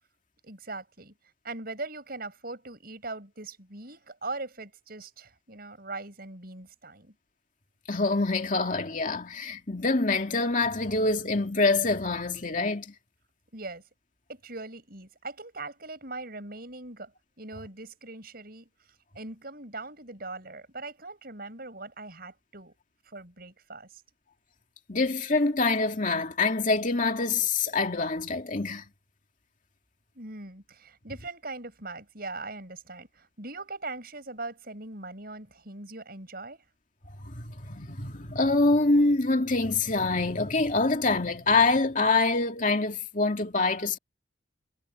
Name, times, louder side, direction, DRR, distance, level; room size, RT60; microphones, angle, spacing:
voice 1, 0.4-1.1 1.4-7.1 13.5-13.8 14.3-17.1 17.4-18.7 19.1-22.7 23.1-24.0 30.1-36.6, right 2 dB, 50° right, 7.8 m, -40 dB
voice 2, 7.9-12.9 24.9-28.8 37.2-44.0, left 3 dB, 45° left, 2.4 m, -25 dB
head